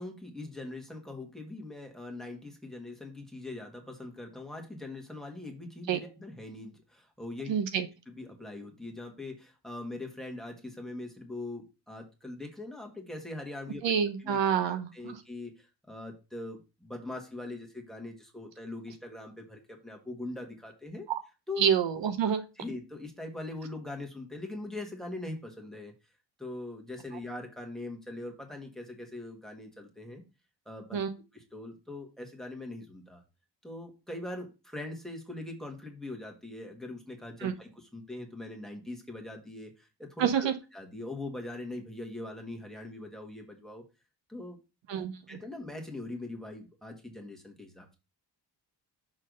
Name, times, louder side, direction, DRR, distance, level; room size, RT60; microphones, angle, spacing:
voice 1, 0.0-7.5 8.1-13.8 14.2-14.4 14.6-21.1 21.5-21.7 22.2-25.9 26.4-30.2 30.6-31.0 31.3-33.2 33.6-43.8 44.3-44.6 45.3-48.0, left 2 dB, ahead, 2 dB, 1.4 m, -42 dB
voice 2, 7.5-7.9 13.8-15.2 21.1-21.2 21.6-22.4 30.9-31.1 37.4-37.5 40.2-40.5 44.9-45.4, right 8 dB, 85° right, 9 dB, 1.0 m, -28 dB
6.3 x 3.3 x 5.1 m, 0.29 s
wide cardioid pair, 150°, 43 cm